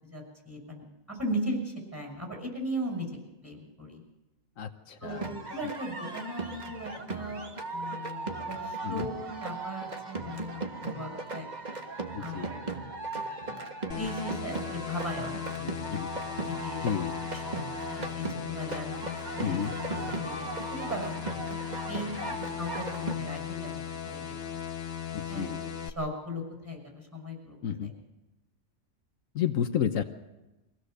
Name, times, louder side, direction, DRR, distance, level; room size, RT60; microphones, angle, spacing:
voice 1, 0.0-3.1 3.4-4.0 5.0-7.4 7.7-11.5 12.2-12.6 13.4-16.0 16.4-16.8 17.3-17.4 17.8-19.1 19.4-19.5 20.2-21.3 21.9-24.6 25.0-27.9, equal, 10° right, 1 dB, 6.0 m, -38 dB
voice 2, 4.6-5.2 8.8-9.1 12.1-12.5 15.9-16.1 16.8-17.1 19.4-19.7 22.2-22.3 25.1-25.6 27.6-27.9 29.3-30.0, left 8 dB, 75° left, 8 dB, 1.3 m, -31 dB
sound 1, 5.1-23.2, right 3 dB, 35° right, 1.5 m, -37 dB
sound 2, 13.9-25.9, left 8 dB, 50° left, 1.2 m, -37 dB
23.5 x 16.5 x 6.6 m, 1.0 s
omnidirectional pair, 1.4 m